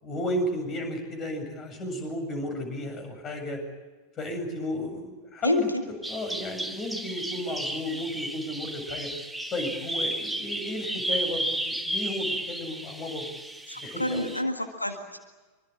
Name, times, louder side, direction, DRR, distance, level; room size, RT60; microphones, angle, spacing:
voice 1, 0.0-3.6 4.2-5.7 6.1-9.1 9.5-13.3 13.8-14.3, left 1 dB, 25° left, 6 dB, 7.6 m, -33 dB
voice 2, 5.4-5.8 13.7-15.2, left 1 dB, 85° left, 5 dB, 1.9 m, -28 dB
Bird vocalization bird call bird song, 6.0-14.4, right 1 dB, ahead, 1.7 m, -33 dB
25.0 x 24.5 x 8.6 m, 1.3 s
figure-of-eight pair, 90°, 0 cm